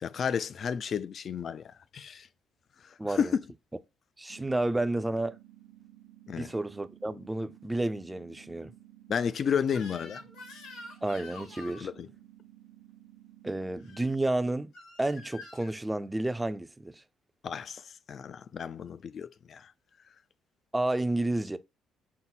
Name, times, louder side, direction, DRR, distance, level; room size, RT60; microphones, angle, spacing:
voice 1, 0.0-2.3 3.1-3.4 6.3-6.5 9.1-10.2 11.8-12.1 17.4-19.7, left 7 dB, 50° left, 0.3 m, -32 dB
voice 2, 3.0-3.3 4.2-5.4 6.3-8.7 11.0-11.9 13.4-14.7 15.0-16.9 20.7-21.6, right 2 dB, 10° right, 0.4 m, -31 dB
sound 1, 4.3-14.3, right 14 dB, 75° right, 0.7 m, -55 dB
Crying sobbing / Screech, 9.7-11.9 13.8-14.1 14.7-15.7, left 3 dB, 85° left, 1.9 m, -47 dB
5.6 x 2.1 x 4.0 m
cardioid pair, 90°, 0 cm